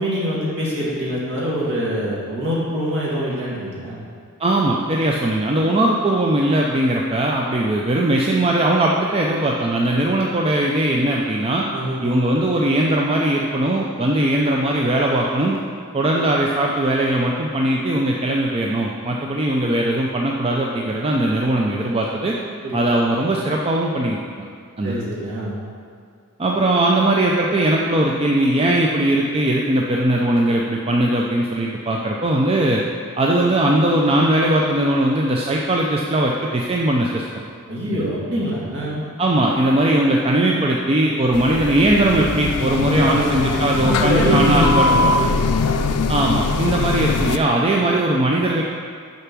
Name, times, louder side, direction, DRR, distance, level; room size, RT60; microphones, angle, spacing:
voice 1, 0.0-4.0 11.7-12.0 22.6-22.8 24.8-25.6 37.7-39.0 43.0-45.9, equal, 55° right, -6 dB, 2.3 m, -24 dB
voice 2, 4.4-11.6 12.0-15.6 15.9-22.4 22.7-24.5 24.8-25.0 26.4-32.8 33.2-37.2 39.2-44.9 46.1-48.6, right 1 dB, 25° right, -1 dB, 0.5 m, -19 dB
sound 1, 41.3-47.4, left 4 dB, 80° left, 0.4 m, -21 dB
6.7 x 5.8 x 6.1 m, 2.2 s
head